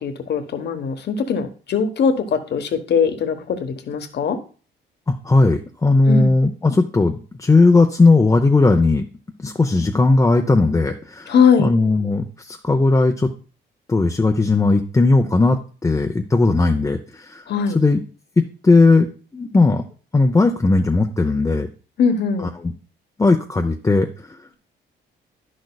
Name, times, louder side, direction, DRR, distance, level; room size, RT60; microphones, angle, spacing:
voice 1, 0.0-4.4 6.0-6.3 11.3-11.7 17.5-17.8 22.0-22.5, left 6 dB, 60° left, 8 dB, 1.1 m, -20 dB
voice 2, 5.1-9.0 9.4-13.3 13.9-17.4 17.7-18.0 18.4-19.8 20.1-21.7 22.6-22.7 23.2-24.1, left 3 dB, 15° left, 3 dB, 0.6 m, -17 dB
10.0 x 6.4 x 2.3 m, 0.37 s
cardioid pair, 90°, 20 cm